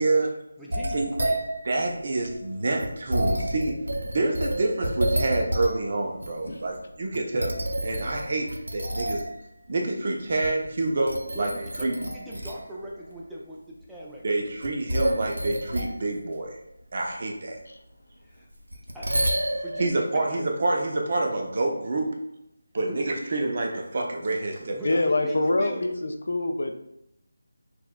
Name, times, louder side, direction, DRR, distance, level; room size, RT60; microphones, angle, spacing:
voice 1, 0.0-0.4 0.9-1.1 1.7-3.8 4.1-7.6 7.8-9.3 9.7-12.0 14.2-16.6 16.9-17.6 19.8-22.2 22.7-25.0, right 2 dB, 45° right, 1 dB, 0.6 m, -27 dB
voice 2, 0.6-1.6 6.3-6.5 11.3-14.2 18.2-18.5 18.9-19.1 19.5-20.4 22.9-23.0 24.7-25.8, right 1 dB, ahead, -7 dB, 0.5 m, -40 dB
sound 1, 0.7-5.9 6.2-6.8 7.1-9.4 10.3-10.8 11.1-12.7 13.2-13.3 14.6-16.0 18.7-19.9, right 1 dB, 85° right, 0.6 m, -29 dB
voice 3, 24.8-26.7, left 2 dB, 65° left, 4 dB, 0.5 m, -25 dB
5.8 x 2.3 x 2.3 m, 0.79 s
figure-of-eight pair, 165°, 0 cm